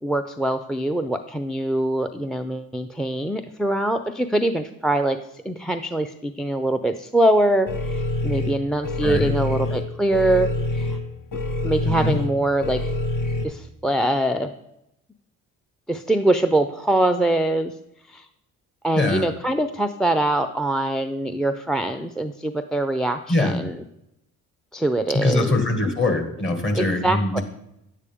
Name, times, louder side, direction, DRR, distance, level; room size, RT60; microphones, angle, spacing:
voice 1, 0.0-5.2 5.4-11.0 11.6-12.8 13.4-14.5 15.9-17.7 18.1-18.3 18.8-23.7 24.7-25.7 26.7-27.4, right 1 dB, ahead, 8 dB, 0.4 m, -23 dB
sound 1, 7.7-13.4, left 2 dB, 65° left, 1.3 m, -26 dB
voice 2, 9.0-9.3 11.8-12.2 19.0-19.3 23.3-23.6 25.1-27.4, left 2 dB, 35° left, 5 dB, 1.9 m, -22 dB
10.0 x 8.2 x 3.6 m, 0.82 s
cardioid pair, 75°, 34 cm